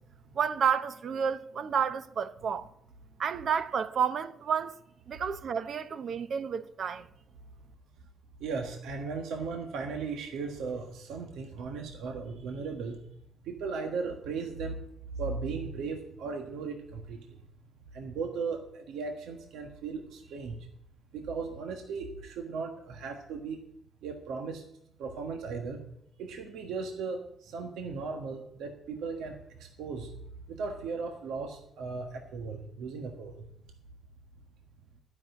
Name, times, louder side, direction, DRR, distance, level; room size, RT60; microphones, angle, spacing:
voice 1, 0.3-2.7 3.2-4.8 5.1-7.1, right 7 dB, 55° right, 0.8 m, -30 dB
voice 2, 8.4-13.0 13.5-14.8 15.2-17.2 17.9-20.6 21.1-23.6 24.0-24.6 25.0-25.8 26.2-29.4 29.8-30.1 30.5-33.4, right 4 dB, 85° right, 1.4 m, -36 dB
12.5 x 6.0 x 9.1 m
cardioid pair, 90°, 0 cm